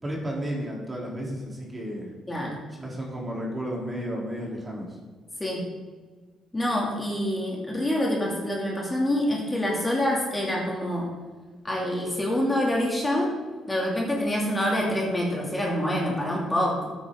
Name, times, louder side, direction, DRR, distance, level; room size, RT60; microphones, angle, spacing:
voice 1, 0.0-2.1 2.8-5.0, equal, 25° right, -2 dB, 3.2 m, -33 dB
voice 2, 2.3-2.6 5.4-5.6 6.5-11.1 11.6-13.3 13.7-16.9, left 1 dB, 15° left, -2 dB, 2.5 m, -26 dB
12.0 x 8.9 x 3.7 m, 1.4 s
cardioid pair, 90°, 0 cm